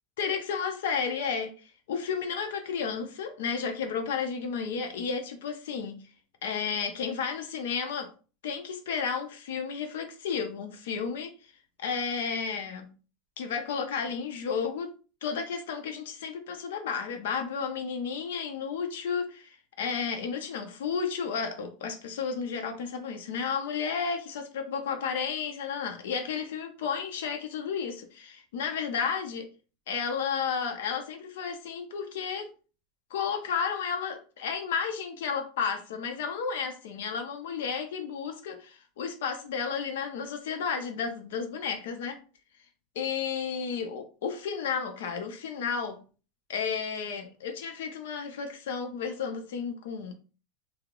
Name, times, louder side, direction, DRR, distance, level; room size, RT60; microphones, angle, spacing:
voice 1, 0.2-6.0 6.4-8.1 8.4-11.3 11.8-12.9 13.4-14.9 15.2-29.5 29.9-32.5 33.1-42.2 43.0-46.0 46.5-50.1, left 6 dB, 85° left, 0.6 m, -32 dB
2.8 x 2.0 x 3.6 m
supercardioid pair, 125°, 0 cm